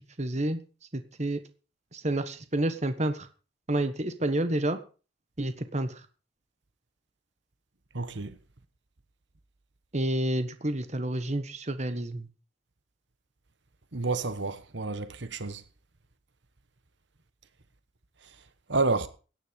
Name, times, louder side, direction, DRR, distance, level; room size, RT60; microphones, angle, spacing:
voice 1, 0.2-0.6 0.9-1.4 1.9-3.3 3.7-4.8 5.4-5.9 9.9-12.3, right 1 dB, 35° right, 1.3 m, -29 dB
voice 2, 7.9-8.3 13.9-15.6 18.7-19.1, right 3 dB, 60° right, 1.3 m, -29 dB
16.5 x 10.0 x 5.3 m
head